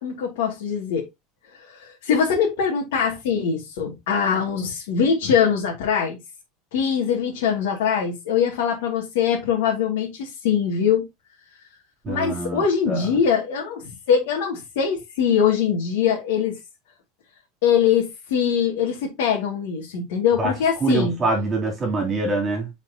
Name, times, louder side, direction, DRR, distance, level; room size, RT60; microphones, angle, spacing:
voice 1, 0.0-1.1 1.6-6.2 6.7-11.0 12.1-16.6 17.6-21.2, left 7 dB, 90° left, 2.5 m, -22 dB
voice 2, 12.0-13.1 20.4-20.5 20.8-22.7, right 3 dB, 20° right, 3.2 m, -24 dB
9.9 x 5.0 x 2.9 m
supercardioid pair, 175°, 0 cm